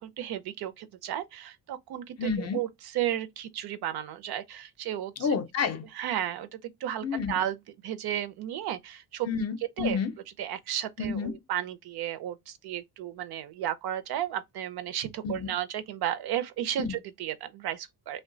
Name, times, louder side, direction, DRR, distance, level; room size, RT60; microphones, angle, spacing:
voice 1, 0.0-5.3 5.9-7.6 7.8-9.3 9.8-10.0 10.4-18.2, right 11 dB, 70° right, 0.6 m, -33 dB
voice 2, 2.2-2.6 5.2-5.8 7.0-7.4 9.3-10.1 11.0-11.4 15.2-15.5 16.8-17.0, left 5 dB, 40° left, 0.5 m, -30 dB
3.0 x 2.2 x 3.7 m
cardioid pair, 145°, 40 cm